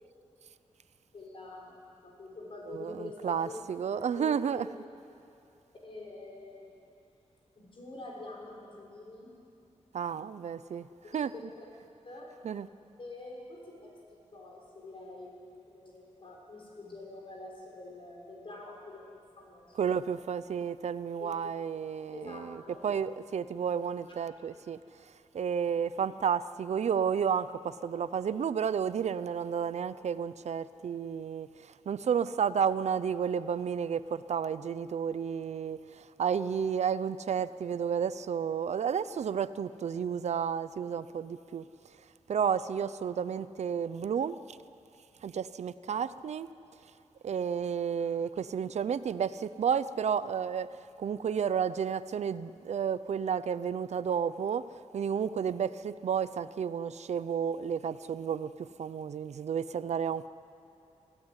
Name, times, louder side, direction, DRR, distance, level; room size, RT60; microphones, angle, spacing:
voice 1, 1.1-3.6 4.2-4.3 4.5-4.7 5.8-6.7 7.6-9.3 11.0-11.7 12.0-12.3 13.0-13.9 14.3-15.4 15.7-19.1 19.4-19.9 21.2-21.3 22.1-22.8, left 2 dB, 45° left, 6.0 m, -46 dB
voice 2, 2.7-4.7 9.9-10.9 11.1-11.3 12.4-12.7 19.8-24.8 25.3-41.6 42.3-44.4 45.2-46.5 47.2-54.7 54.9-60.3, right 7 dB, 70° right, 0.6 m, -31 dB
25.5 x 16.5 x 9.8 m
wide cardioid pair, 150°, 12 cm